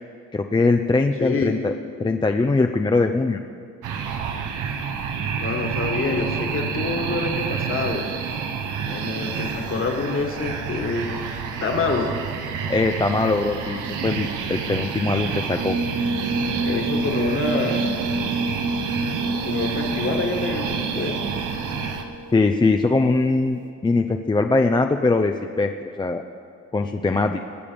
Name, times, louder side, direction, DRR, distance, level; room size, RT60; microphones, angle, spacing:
voice 1, 0.3-1.7 2.0-3.4 12.7-15.8 22.3-25.7 26.0-26.2 26.7-27.4, left 3 dB, 15° left, 5 dB, 0.5 m, -21 dB
voice 2, 1.2-1.6 5.4-8.1 8.9-12.1 16.6-17.9 19.4-21.2, left 4 dB, 45° left, 2 dB, 1.8 m, -27 dB
sound 1, 3.8-22.0, right 6 dB, 90° right, 1.0 m, -29 dB
sound 2, 15.6-23.1, right 2 dB, 50° right, 1.4 m, -29 dB
20.5 x 7.0 x 5.2 m, 2.2 s
cardioid pair, 90°, 30 cm